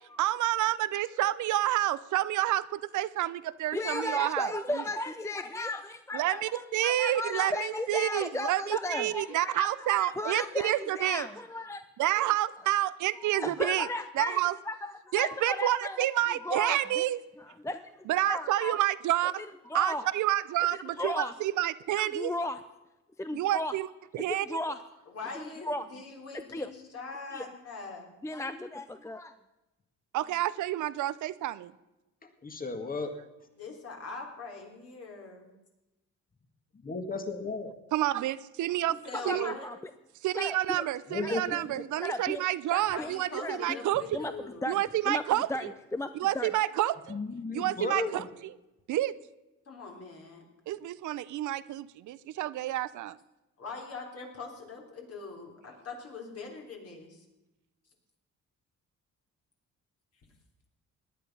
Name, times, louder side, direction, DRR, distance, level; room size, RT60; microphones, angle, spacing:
voice 1, 0.2-4.8 6.1-11.3 12.0-13.9 14.2-14.5 15.1-17.2 18.1-19.4 19.7-22.3 23.3-23.9 24.1-24.6 30.1-31.7 37.9-39.0 39.2-39.5 40.2-44.2 44.7-45.7 46.2-47.2 47.5-48.2 48.9-49.1 50.7-53.2, right 14 dB, 75° right, 16 dB, 0.6 m, -29 dB
voice 2, 3.7-12.2 13.2-14.4 14.7-17.0 17.4-18.8 19.7-20.0 21.0-21.3 22.0-22.6 23.2-23.7 24.3-24.8 25.6-25.9 26.5-26.7 27.3-27.4 28.2-29.3 39.1-39.8 40.3-40.8 41.2-41.4 42.0-42.4 42.7-43.1 43.4-43.8 44.1-44.3 44.6-44.8 45.1-45.2 45.5-45.7 45.9-46.5, left 1 dB, 10° left, 10 dB, 0.6 m, -35 dB
voice 3, 25.1-28.1 33.6-35.5 38.9-39.7 42.9-44.7 49.7-50.8 53.6-57.2, left 4 dB, 50° left, 1 dB, 3.8 m, -42 dB
voice 4, 32.2-33.1 36.7-37.8 41.1-41.8 47.1-48.3, left 3 dB, 30° left, 7 dB, 1.9 m, -35 dB
17.5 x 10.5 x 5.5 m, 1.0 s
cardioid pair, 90°, 30 cm